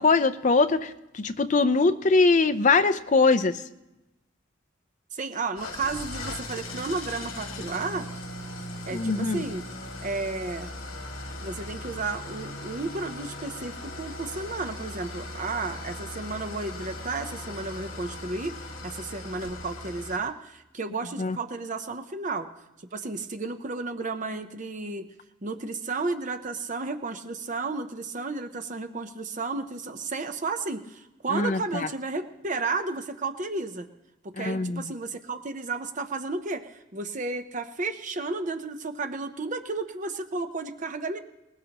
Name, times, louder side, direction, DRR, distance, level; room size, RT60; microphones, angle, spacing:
voice 1, 0.0-3.6 8.9-9.4 21.2-21.4 31.3-31.9 34.4-34.8, left 3 dB, 40° left, 11 dB, 0.5 m, -22 dB
voice 2, 5.1-8.1 8.9-9.6 10.0-10.7 11.4-22.5 22.9-25.1 25.4-33.9 34.2-41.2, right 3 dB, 40° right, 7 dB, 0.7 m, -33 dB
Engine starting / Idling, 5.6-20.2, left 2 dB, 85° left, 2.0 m, -38 dB
20.0 x 20.0 x 2.9 m, 0.97 s
head